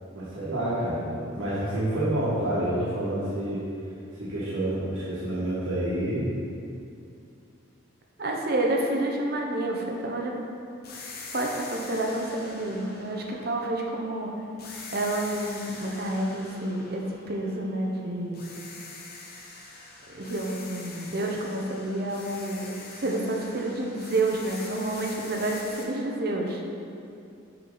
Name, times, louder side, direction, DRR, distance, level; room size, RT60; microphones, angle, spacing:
voice 1, 0.1-3.6 4.1-6.3, right 1 dB, 75° right, -10 dB, 1.6 m, -28 dB
voice 2, 8.2-10.4 11.3-14.3 14.9-18.4 20.1-26.6, right 1 dB, 45° right, 0 dB, 0.8 m, -29 dB
sound 1, 10.8-14.1 14.6-18.0 18.3-25.8, left 3 dB, 45° left, 0.8 m, -44 dB
6.7 x 5.9 x 3.9 m, 2.5 s
head